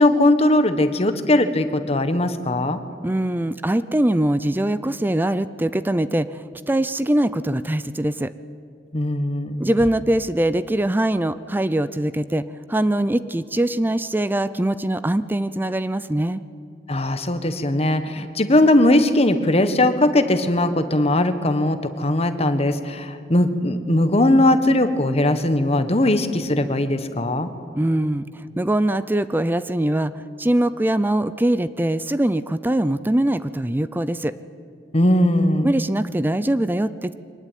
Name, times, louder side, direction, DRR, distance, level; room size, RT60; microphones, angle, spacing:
voice 1, 0.0-2.8 8.9-9.7 16.9-27.5 34.9-35.7, left 1 dB, 35° left, 10 dB, 1.4 m, -19 dB
voice 2, 3.0-8.3 9.6-16.4 27.8-34.4 35.6-37.1, right 1 dB, 10° right, 14 dB, 0.5 m, -22 dB
23.5 x 19.0 x 9.3 m, 2.4 s
head